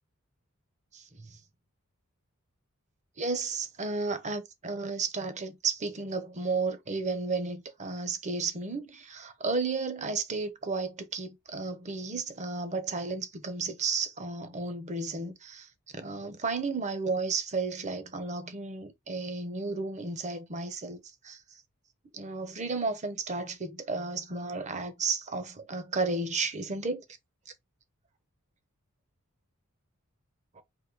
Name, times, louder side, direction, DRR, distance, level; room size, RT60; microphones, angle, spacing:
voice 1, 0.9-1.4 3.2-21.4 22.1-27.0 30.5-30.6, right 3 dB, 35° right, 0.8 m, -33 dB
3.9 x 2.8 x 4.6 m
head